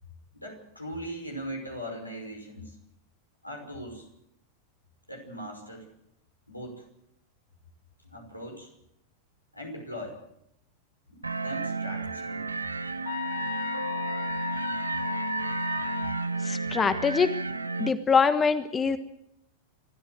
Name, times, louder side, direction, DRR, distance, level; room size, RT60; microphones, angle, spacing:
voice 1, 0.3-2.7 3.4-4.0 5.1-5.9 6.5-6.8 8.0-8.7 9.5-10.2 11.1-12.5, equal, 90° left, 1 dB, 5.5 m, -39 dB
sound 1, 11.2-17.9, right 4 dB, 80° right, 0.9 m, -32 dB
sound 2, 13.1-16.3, left 11 dB, 60° left, 1.6 m, -34 dB
voice 2, 16.4-17.3 17.8-19.0, left 5 dB, 20° left, 12 dB, 1.3 m, -24 dB
27.5 x 13.5 x 7.8 m, 0.79 s
figure-of-eight pair, 90°, 0 cm